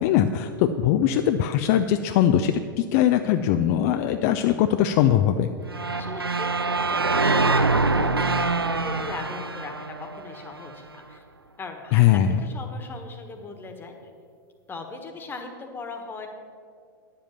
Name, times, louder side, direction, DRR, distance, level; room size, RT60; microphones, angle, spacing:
voice 1, 0.0-5.5 11.9-12.4, left 10 dB, 40° left, 8 dB, 0.5 m, -21 dB
sound 1, 5.7-10.7, right 3 dB, 85° right, 0.5 m, -24 dB
voice 2, 5.9-11.2 11.6-13.9 14.7-16.3, left 3 dB, 15° left, 4 dB, 1.4 m, -39 dB
10.0 x 7.6 x 7.2 m, 2.2 s
figure-of-eight pair, 95°, 12 cm